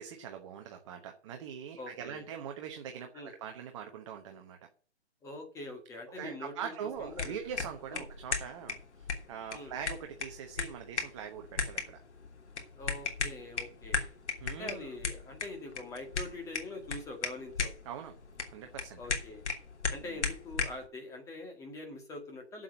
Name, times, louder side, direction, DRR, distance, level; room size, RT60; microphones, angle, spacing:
voice 1, 0.0-4.6 6.1-12.0 14.4-14.9 17.8-18.1 18.5-19.0 20.1-20.2, right 8 dB, 25° right, 4 dB, 1.0 m, -42 dB
voice 2, 1.8-2.3 3.1-3.3 5.2-6.7 7.0-7.4 7.9-8.1 9.5-9.7 12.8-14.2 14.5-17.7 19.0-19.4 19.9-22.6, left 2 dB, 10° left, 2 dB, 1.9 m, -44 dB
sound 1, 7.0-20.8, left 5 dB, 75° left, 3.2 m, -37 dB
7.9 x 7.7 x 7.6 m, 0.41 s
hypercardioid pair, 160°, 35 cm